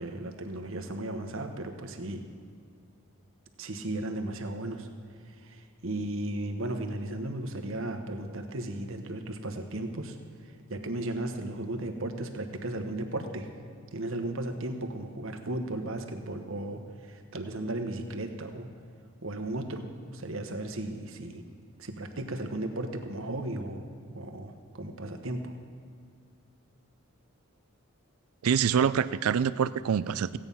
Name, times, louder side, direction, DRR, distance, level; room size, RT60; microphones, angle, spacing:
voice 1, 0.0-2.2 3.6-4.9 5.3-10.2 10.4-13.5 13.9-18.7 19.2-21.4 21.8-23.9 24.1-25.5, right 1 dB, 65° right, 5 dB, 1.1 m, -35 dB
voice 2, 28.4-30.4, right 7 dB, 85° right, 16 dB, 0.4 m, -25 dB
16.5 x 8.8 x 5.5 m, 2.3 s
head